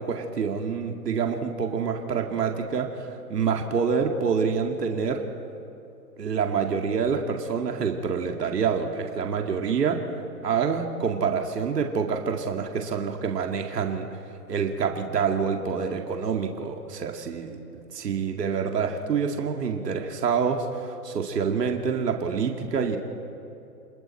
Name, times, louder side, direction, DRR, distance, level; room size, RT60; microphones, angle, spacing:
voice 1, 0.0-5.2 6.2-10.0 10.4-14.1 14.5-23.0, right 6 dB, 80° right, 3 dB, 2.3 m, -27 dB
30.0 x 20.5 x 4.3 m, 2.8 s
hypercardioid pair, 160°, 48 cm